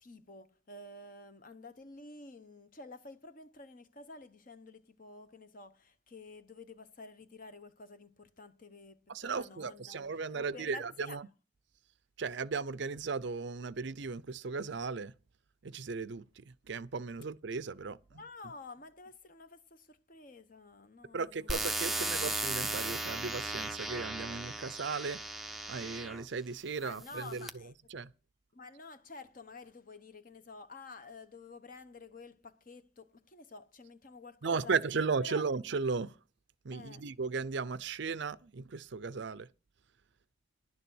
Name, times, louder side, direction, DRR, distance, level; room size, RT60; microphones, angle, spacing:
voice 1, 0.0-10.0 10.3-11.2 18.1-22.1 26.8-27.9 28.5-34.7 35.2-35.5 36.7-37.0, left 3 dB, 40° left, 0.9 m, -50 dB
voice 2, 9.1-11.3 12.2-15.1 15.6-18.2 21.1-25.2 25.7-27.5 27.9-28.1 34.4-36.2 36.6-39.5, right 4 dB, 60° right, 0.5 m, -36 dB
sound 1, 21.5-26.2 26.9-27.5, right 2 dB, ahead, 0.6 m, -36 dB
11.0 x 6.8 x 7.8 m
head